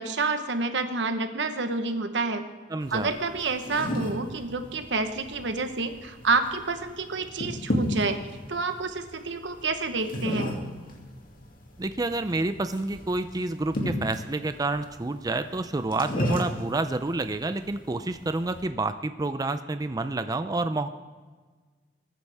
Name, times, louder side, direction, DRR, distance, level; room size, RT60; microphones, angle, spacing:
voice 1, 0.0-2.4 2.9-8.2 8.5-10.5, right 3 dB, 90° right, 8 dB, 1.1 m, -28 dB
voice 2, 2.7-3.1 11.8-20.9, right 2 dB, 20° right, 10 dB, 0.5 m, -29 dB
sound 1, 2.8-18.7, left 1 dB, 55° left, 2.3 m, -35 dB
21.0 x 9.7 x 3.5 m, 1.4 s
head